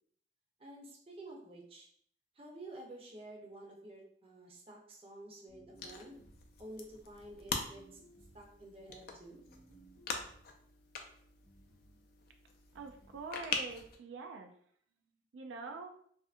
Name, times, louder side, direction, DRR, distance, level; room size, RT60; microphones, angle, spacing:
voice 1, 0.6-1.9 2.3-6.2 6.6-8.0 8.3-9.4, right 1 dB, 30° right, -2 dB, 0.5 m, -51 dB
sound 1, 5.5-6.6 7.5-8.6 9.4-10.5 11.4-12.0 12.7-13.3, right 2 dB, 65° right, 1.0 m, -61 dB
sound 2, 5.8-14.0, left 5 dB, 50° left, 0.3 m, -44 dB
voice 2, 12.7-14.5 15.3-15.9, right 3 dB, 85° right, 4 dB, 0.3 m, -45 dB
2.5 x 2.4 x 2.4 m, 0.62 s
head